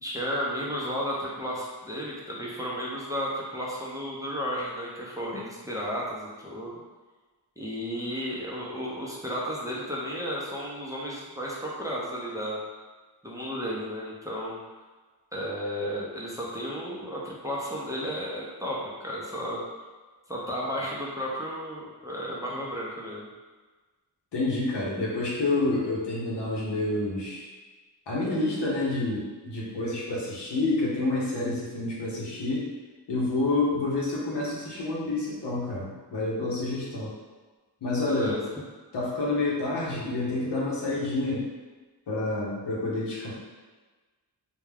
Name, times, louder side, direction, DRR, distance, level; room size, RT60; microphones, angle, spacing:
voice 1, 0.0-6.8 7.6-12.6 13.2-14.6 15.3-19.6 20.3-23.3 38.1-38.4, equal, 10° right, -5 dB, 0.6 m, -33 dB
voice 2, 24.3-27.5 28.1-32.7 33.1-37.1 37.8-38.4 38.9-41.5 42.1-43.3, left 2 dB, 70° left, -5 dB, 0.9 m, -28 dB
2.3 x 2.2 x 3.3 m, 1.3 s
cardioid pair, 50°, 43 cm